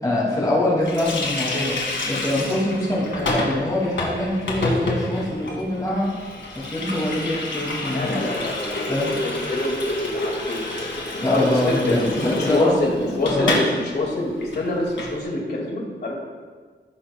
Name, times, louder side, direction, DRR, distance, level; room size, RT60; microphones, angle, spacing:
voice 1, 0.0-1.8 2.1-6.1 6.6-8.2 8.9-9.1 11.2-12.7 13.1-13.6, left 1 dB, 20° left, -7 dB, 2.2 m, -24 dB
Water tap faucet, 0.8-13.7 14.0-14.1 14.4-15.1, left 2 dB, 80° left, 1.7 m, -28 dB
voice 2, 7.9-10.7 11.2-16.1, left 2 dB, 60° left, -2 dB, 2.0 m, -26 dB
15.0 x 6.1 x 2.2 m, 1.5 s
wide cardioid pair, 125°, 19 cm